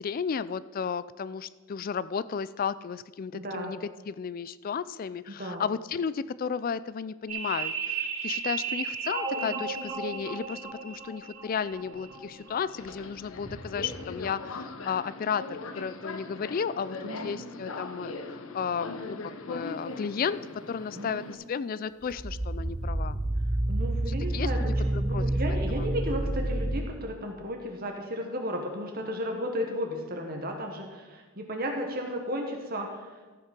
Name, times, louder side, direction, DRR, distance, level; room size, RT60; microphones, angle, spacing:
voice 1, 0.0-23.2 24.1-25.2 25.8-25.9, left 6 dB, 40° left, 17 dB, 0.3 m, -33 dB
voice 2, 3.3-3.7 5.3-5.6 17.0-17.4 20.9-21.3 23.7-33.1, equal, 45° right, 2 dB, 1.3 m, -34 dB
sound 1, 7.3-14.2, right 6 dB, 80° right, 2.4 m, -35 dB
Subway metro underground, 11.8-21.3, left 3 dB, 75° left, 0.8 m, -41 dB
sound 2, 22.0-26.8, right 1 dB, 20° right, 0.5 m, -28 dB
14.0 x 5.8 x 5.9 m, 1.3 s
head